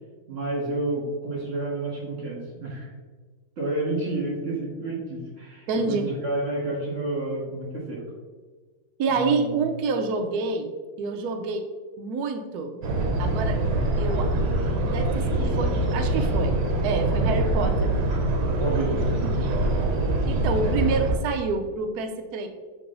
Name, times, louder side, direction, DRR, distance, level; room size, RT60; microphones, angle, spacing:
voice 1, 0.3-2.9 3.6-8.0 9.1-9.6 15.2-15.7 17.4-17.7 18.6-19.0, right 2 dB, 35° right, -3 dB, 2.1 m, -30 dB
voice 2, 5.7-6.1 9.0-11.7 12.0-12.8 13.2-13.6 14.0-14.3 14.8-16.5 16.8-17.9 19.2-19.5 20.3-22.5, right 4 dB, 85° right, 5 dB, 0.8 m, -28 dB
sound 1, 12.8-21.1, right 1 dB, 60° right, 1.3 m, -24 dB
6.6 x 3.7 x 3.9 m, 1.4 s
omnidirectional pair, 2.3 m